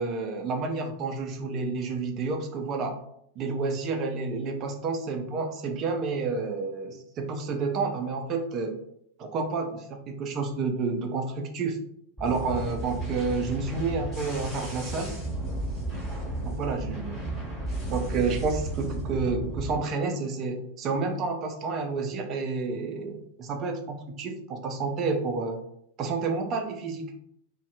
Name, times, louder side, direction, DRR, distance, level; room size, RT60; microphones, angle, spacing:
voice 1, 0.0-3.0 3.4-8.8 9.2-11.8 12.2-15.1 16.4-17.1 17.9-25.6 26.0-27.1, right 4 dB, 35° right, 5 dB, 0.4 m, -30 dB
sound 1, 12.2-19.8, right 1 dB, 5° left, 1.3 m, -33 dB
2.6 x 2.2 x 2.5 m, 0.72 s
figure-of-eight pair, 90°, 0 cm